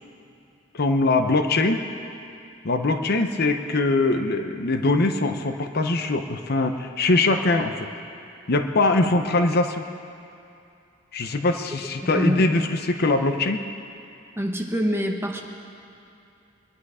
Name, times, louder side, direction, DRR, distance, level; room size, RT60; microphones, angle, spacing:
voice 1, 0.7-1.8 2.6-7.7 8.5-9.8 11.1-13.6, left 2 dB, 55° left, 7 dB, 0.8 m, -22 dB
voice 2, 12.0-12.5 14.4-15.4, equal, 15° right, 1 dB, 1.2 m, -25 dB
22.5 x 10.5 x 4.9 m, 2.7 s
head